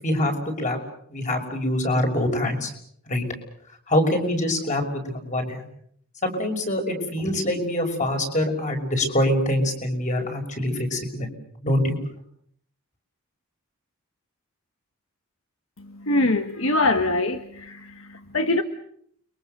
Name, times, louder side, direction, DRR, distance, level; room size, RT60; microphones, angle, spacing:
voice 1, 0.0-0.8 1.1-2.7 3.1-3.2 3.9-5.7 6.2-11.3 11.6-12.0, left 1 dB, 35° left, 5 dB, 6.1 m, -24 dB
voice 2, 16.0-18.6, left 2 dB, 65° left, 7 dB, 1.5 m, -23 dB
30.0 x 23.5 x 6.8 m, 0.68 s
head